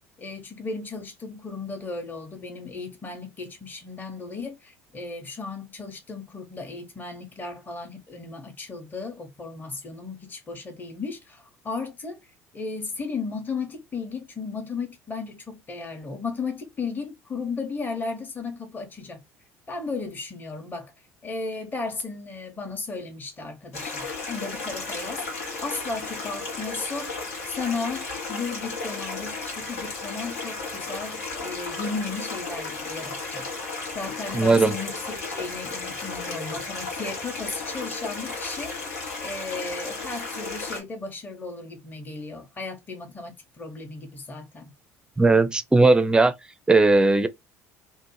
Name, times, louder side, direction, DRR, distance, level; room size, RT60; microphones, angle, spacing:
voice 1, 0.2-12.2 12.5-19.2 19.7-20.9 21.2-27.1 27.5-33.5 33.9-38.7 39.2-44.7, left 4 dB, 25° left, 0.8 m, -35 dB
Stream, 23.7-40.8, left 3 dB, 80° left, 0.8 m, -34 dB
voice 2, 34.3-34.7 45.2-46.3 46.7-47.3, right 3 dB, 10° right, 0.4 m, -17 dB
2.5 x 2.0 x 3.0 m
hypercardioid pair, 65°, 8 cm